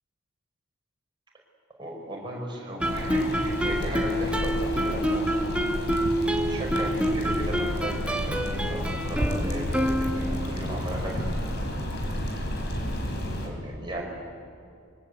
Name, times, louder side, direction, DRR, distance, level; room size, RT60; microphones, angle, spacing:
voice 1, 1.8-5.4 6.3-11.8 13.4-14.1, right 1 dB, 20° right, -1 dB, 5.7 m, -36 dB
sound 1, 2.8-13.5, equal, 50° left, 4.4 m, -31 dB
Guitar, 2.8-10.5, equal, 5° right, 1.2 m, -27 dB
25.5 x 23.5 x 8.4 m, 2.4 s
head